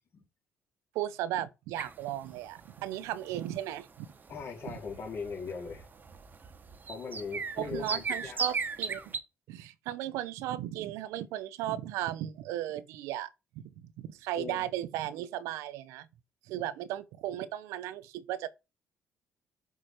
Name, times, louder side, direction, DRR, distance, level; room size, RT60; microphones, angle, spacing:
voice 1, 0.9-4.1 4.7-4.8 7.6-9.0 9.5-13.3 13.6-16.1 16.5-18.5, right 13 dB, 85° right, 0.6 m, -36 dB
sound 1, 1.8-9.2, right 5 dB, 40° right, 1.1 m, -38 dB
voice 2, 4.3-5.9 6.9-8.4 14.4-14.6, left 5 dB, 55° left, 3.4 m, -39 dB
6.7 x 4.7 x 4.4 m
supercardioid pair, 75°, 5 cm